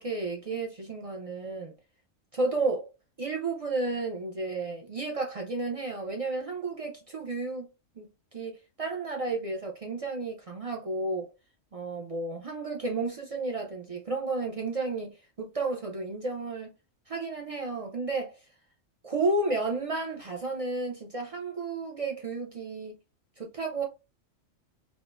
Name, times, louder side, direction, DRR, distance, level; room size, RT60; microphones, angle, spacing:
voice 1, 0.0-1.7 2.3-2.9 3.2-7.7 8.0-8.1 8.3-11.3 11.7-16.7 17.1-18.4 19.0-22.9 23.4-23.8, right 3 dB, 55° right, 0.4 m, -32 dB
3.6 x 2.5 x 2.3 m
omnidirectional pair, 1.4 m